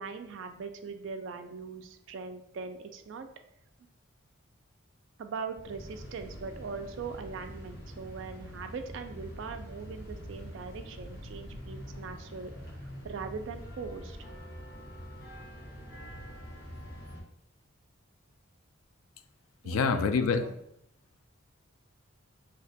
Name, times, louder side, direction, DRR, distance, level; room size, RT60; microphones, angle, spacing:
voice 1, 0.0-3.3 5.2-12.5 13.0-14.2 19.6-20.6, right 5 dB, 60° right, 7 dB, 0.3 m, -41 dB
sound 1, 5.5-17.2, equal, 50° left, 0.9 m, -45 dB
voice 2, 19.7-20.4, left 5 dB, 80° left, 10 dB, 0.3 m, -26 dB
2.8 x 2.2 x 4.0 m, 0.75 s
head